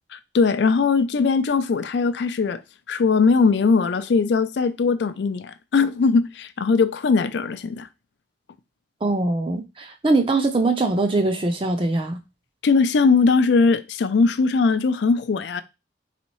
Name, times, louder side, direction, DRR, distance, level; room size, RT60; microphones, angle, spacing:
voice 1, 0.1-2.6 2.9-7.9 12.6-15.6, left 4 dB, 65° left, 0.4 m, -20 dB
voice 2, 9.0-12.2, right 2 dB, 25° right, 0.5 m, -22 dB
4.2 x 3.5 x 3.0 m
head